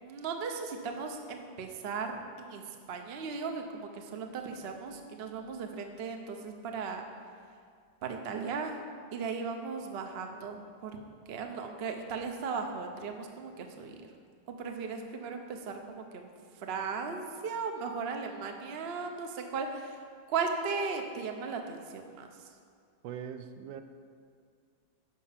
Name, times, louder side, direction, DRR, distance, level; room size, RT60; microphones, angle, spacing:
voice 1, 0.0-7.0 8.0-8.8 9.1-11.0 11.3-13.9 14.5-16.3 16.6-20.0 20.3-22.5, right 5 dB, 60° right, 4 dB, 0.6 m, -37 dB
voice 2, 23.0-23.8, right 8 dB, 80° right, 9 dB, 1.3 m, -41 dB
10.5 x 5.6 x 5.8 m, 2.2 s
omnidirectional pair, 2.1 m